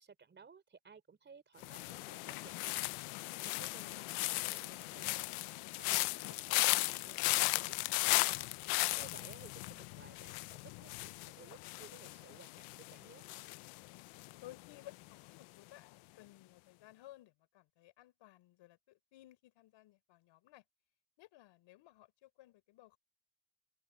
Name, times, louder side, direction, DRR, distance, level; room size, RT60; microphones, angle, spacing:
voice 1, 0.0-2.9 3.4-5.2 5.7-8.2 9.0-13.3, right 5 dB, 20° right, 4.0 m, -58 dB
sound 1, 1.6-14.7 14.9-15.4, left 22 dB, 80° left, 0.7 m, -36 dB
voice 2, 14.4-20.6 21.2-23.0, left 16 dB, 65° left, 5.7 m, -58 dB
open air
cardioid pair, 170°, 49 cm